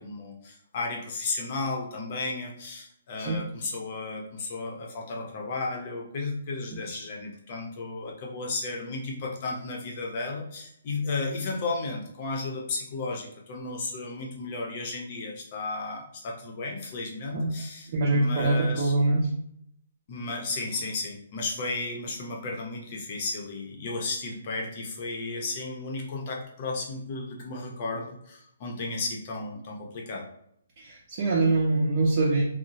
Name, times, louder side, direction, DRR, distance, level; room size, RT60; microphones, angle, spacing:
voice 1, 0.0-18.9 20.1-30.3, left 3 dB, 40° left, 0 dB, 0.6 m, -34 dB
voice 2, 17.9-19.3 30.8-32.4, right 2 dB, 40° right, -5 dB, 0.6 m, -24 dB
2.9 x 2.0 x 2.7 m, 0.71 s
hypercardioid pair, 160°, 0 cm